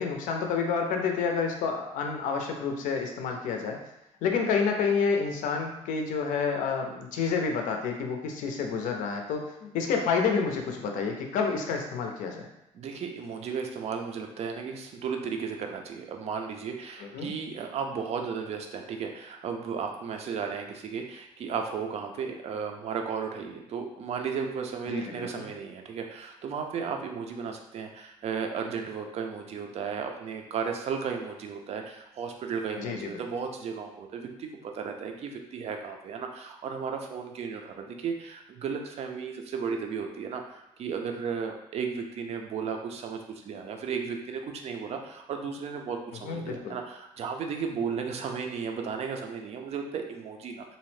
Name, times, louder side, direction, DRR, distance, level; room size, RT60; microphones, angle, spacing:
voice 1, 0.0-3.8 4.2-12.5 17.0-17.3 24.9-25.5 32.8-33.2 46.2-46.8, left 5 dB, 85° left, 3 dB, 0.5 m, -29 dB
voice 2, 12.7-50.8, right 6 dB, 55° right, 3 dB, 0.4 m, -34 dB
2.6 x 2.0 x 3.1 m, 0.85 s
cardioid pair, 105°, 13 cm